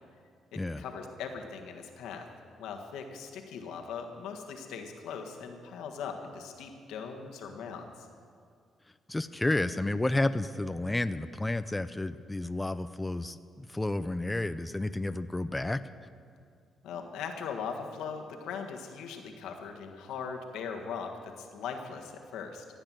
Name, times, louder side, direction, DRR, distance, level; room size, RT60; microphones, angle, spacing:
voice 1, 0.8-2.3 2.6-8.1 16.8-22.7, left 6 dB, 85° left, 3 dB, 1.6 m, -40 dB
voice 2, 9.1-15.8, left 2 dB, 15° left, 12 dB, 0.4 m, -31 dB
15.5 x 8.9 x 7.6 m, 2.2 s
cardioid pair, 90°, 0 cm